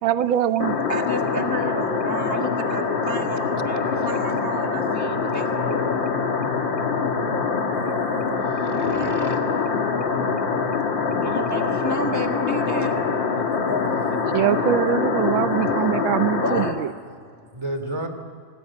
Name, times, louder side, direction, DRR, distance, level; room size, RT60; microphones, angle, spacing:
voice 1, 0.0-0.8 1.6-1.8 14.3-16.9, right 11 dB, 85° right, 12 dB, 1.6 m, -23 dB
sound 1, 0.6-16.7, left 5 dB, 70° left, 2.7 m, -24 dB
voice 2, 0.9-6.1 7.7-7.9 8.7-9.4 11.2-13.0 16.4-16.8 17.4-17.5, equal, 10° left, 4 dB, 1.1 m, -31 dB
voice 3, 8.5-9.4 10.0-10.2 15.6-15.9 17.1-17.2 17.5-18.1, right 1 dB, 15° right, 6 dB, 2.9 m, -34 dB
25.5 x 19.5 x 9.1 m, 2.1 s
omnidirectional pair, 2.1 m